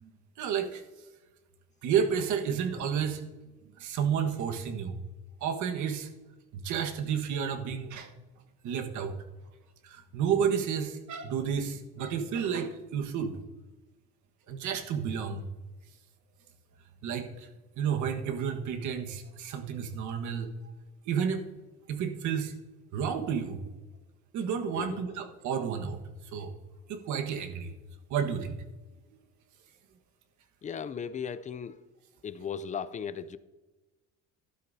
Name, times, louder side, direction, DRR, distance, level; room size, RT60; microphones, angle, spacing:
voice 1, 0.4-0.8 1.8-3.2 3.8-5.0 5.4-6.1 6.5-8.1 8.6-9.1 9.8-13.4 14.5-15.5 17.0-17.5 17.8-20.5 21.1-21.4 21.9-22.5 22.9-23.6 24.3-26.0 26.3-26.5 26.9-27.7 28.1-28.5, right 7 dB, 70° right, 5 dB, 1.4 m, -31 dB
voice 2, 30.6-31.8 32.2-33.4, left 7 dB, 25° left, 14 dB, 0.4 m, -36 dB
12.0 x 12.0 x 2.7 m, 1.2 s
cardioid pair, 135°, 31 cm